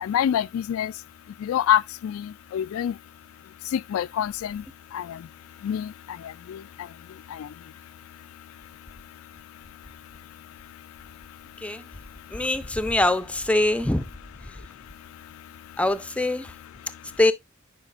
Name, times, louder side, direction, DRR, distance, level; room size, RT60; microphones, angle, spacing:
voice 1, 0.0-0.9 1.4-2.9 3.7-4.6 4.9-5.0 5.6-5.9 6.5-6.6, left 10 dB, 80° left, 0.3 m, -25 dB
voice 2, 11.6-11.9 12.3-14.1 14.4-14.6 15.8-16.5 17.2-17.3, left 1 dB, 5° left, 0.5 m, -23 dB
9.0 x 5.3 x 2.5 m
head